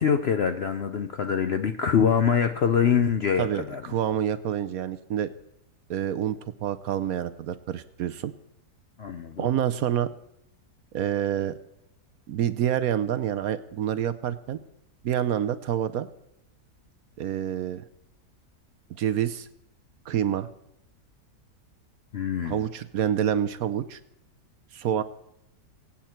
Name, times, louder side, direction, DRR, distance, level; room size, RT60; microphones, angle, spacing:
voice 1, 0.0-4.0 9.0-9.5 22.1-22.6, left 7 dB, 60° left, 8 dB, 0.7 m, -24 dB
voice 2, 3.4-5.3 5.9-8.3 9.4-10.1 10.9-11.5 12.3-14.6 15.0-16.1 17.2-17.8 19.0-19.5 20.1-20.5 22.4-24.0 24.7-25.0, right 10 dB, 65° right, 12 dB, 1.0 m, -27 dB
23.5 x 8.7 x 4.4 m, 0.80 s
omnidirectional pair, 1.8 m